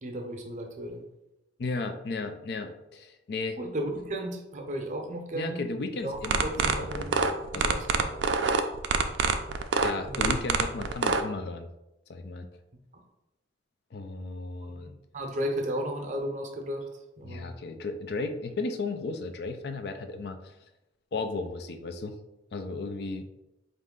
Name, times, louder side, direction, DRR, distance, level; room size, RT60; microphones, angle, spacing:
voice 1, 0.0-1.0 3.6-5.6 6.0-7.1 7.5-8.1 10.0-10.3 14.6-16.9 17.2-17.5, right 1 dB, 45° right, 3 dB, 0.6 m, -34 dB
voice 2, 1.6-3.6 5.3-7.8 9.8-11.7 12.1-12.5 13.9-14.9 17.2-20.5 21.1-22.2 22.5-23.2, left 3 dB, 60° left, 7 dB, 0.4 m, -35 dB
sound 1, 6.1-11.2, right 5 dB, 75° right, 0.4 m, -25 dB
4.1 x 2.5 x 3.7 m, 0.93 s
head